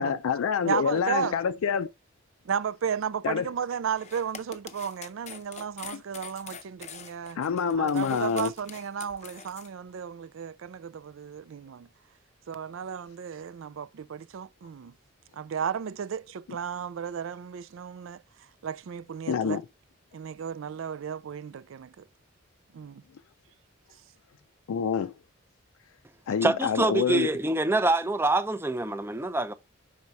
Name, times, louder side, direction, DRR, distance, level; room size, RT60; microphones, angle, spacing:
voice 1, 0.0-1.9 3.2-3.5 5.9-6.0 7.4-8.5 19.3-19.6 24.7-25.1 26.3-27.3, left 7 dB, 80° left, 0.4 m, -27 dB
voice 2, 0.6-1.4 2.5-7.4 7.8-11.9 12.5-14.9 15.4-18.2 18.6-19.6 20.1-21.9 22.7-23.0, right 7 dB, 70° right, 0.4 m, -34 dB
sound 1, 3.9-9.7, left 7 dB, 35° left, 0.6 m, -44 dB
voice 3, 26.4-29.5, right 2 dB, 10° right, 0.5 m, -25 dB
5.7 x 4.7 x 4.0 m
head